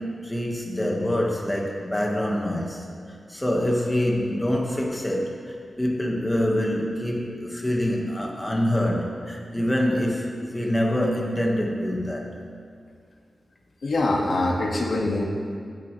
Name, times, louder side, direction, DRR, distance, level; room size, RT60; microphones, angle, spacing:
voice 1, 0.0-12.3, left 1 dB, 15° left, -1 dB, 1.5 m, -25 dB
voice 2, 13.8-15.2, left 2 dB, 65° left, -1 dB, 1.7 m, -23 dB
15.5 x 9.3 x 3.2 m, 2.2 s
wide cardioid pair, 140°, 0 cm